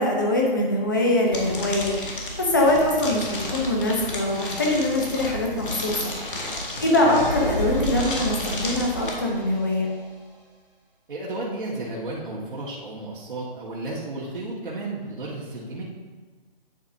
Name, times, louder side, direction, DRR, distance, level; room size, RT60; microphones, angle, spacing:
voice 1, 0.0-9.9, left 1 dB, 20° left, -1 dB, 0.9 m, -23 dB
sound 1, 1.3-9.1, left 1 dB, 60° left, 2.1 m, -33 dB
voice 2, 6.7-7.1 11.1-15.8, right 2 dB, 60° right, -7 dB, 1.9 m, -33 dB
sound 2, 7.1-9.9, right 1 dB, 5° left, 1.4 m, -31 dB
9.5 x 8.6 x 2.8 m, 1.3 s
hypercardioid pair, 175°, 30 cm